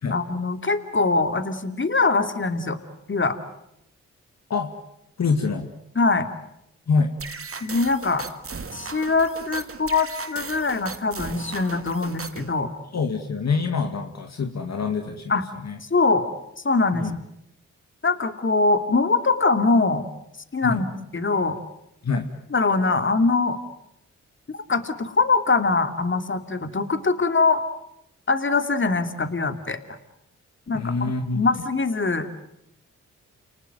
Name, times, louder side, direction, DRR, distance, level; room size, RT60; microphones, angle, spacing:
voice 1, 0.1-2.8 3.1-3.4 5.9-6.3 7.6-8.2 8.7-12.7 15.3-15.4 15.9-16.3 16.6-17.1 18.0-20.0 20.5-20.9 21.1-21.6 22.5-23.6 24.5-27.6 28.3-30.0 30.7-32.3, left 3 dB, 35° left, 9 dB, 2.8 m, -22 dB
voice 2, 5.2-5.7 6.9-7.1 12.9-15.3 15.6-15.8 16.9-17.2 20.6-20.9 22.0-22.3 30.7-31.5, left 4 dB, 55° left, 5 dB, 2.3 m, -25 dB
sound 1, 7.2-12.5, right 5 dB, 45° right, 2.0 m, -37 dB
29.0 x 19.5 x 9.3 m, 0.81 s
supercardioid pair, 45°, 32 cm